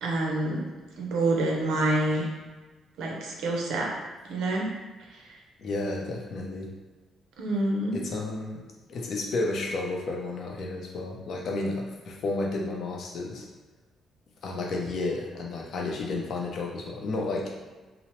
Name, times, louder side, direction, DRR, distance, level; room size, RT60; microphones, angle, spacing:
voice 1, 0.0-0.6 1.0-2.3 3.0-3.9 4.2-4.7 7.4-8.0, right 2 dB, 85° right, -1 dB, 0.6 m, -27 dB
voice 2, 5.6-6.7 7.9-8.6 8.9-13.5 14.4-17.5, left 2 dB, 65° left, 0 dB, 0.6 m, -32 dB
2.9 x 2.0 x 3.0 m, 1.3 s
cardioid pair, 90°, 0 cm